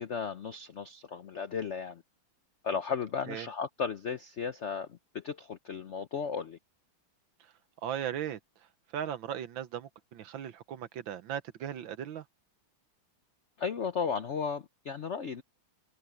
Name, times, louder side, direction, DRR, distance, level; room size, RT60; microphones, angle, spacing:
voice 1, 0.0-2.0 2.6-6.6 13.6-15.4, left 6 dB, 80° left, 0.6 m, -35 dB
voice 2, 7.8-8.4 8.9-12.2, right 10 dB, 70° right, 1.6 m, -37 dB
omnidirectional pair, 2.3 m